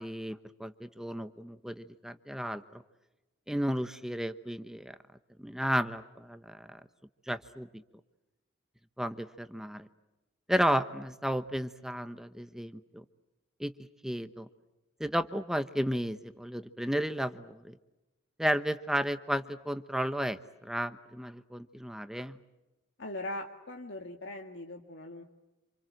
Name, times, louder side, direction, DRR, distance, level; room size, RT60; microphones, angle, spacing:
voice 1, 0.0-2.8 3.5-4.9 5.4-6.8 7.3-7.8 9.0-9.9 10.5-13.0 13.6-13.7 14.0-14.5 15.0-17.7 18.4-22.4, equal, ahead, 10 dB, 0.9 m, -33 dB
voice 2, 23.0-25.2, left 1 dB, 60° left, 3 dB, 2.0 m, -40 dB
28.0 x 27.5 x 7.7 m, 1.0 s
head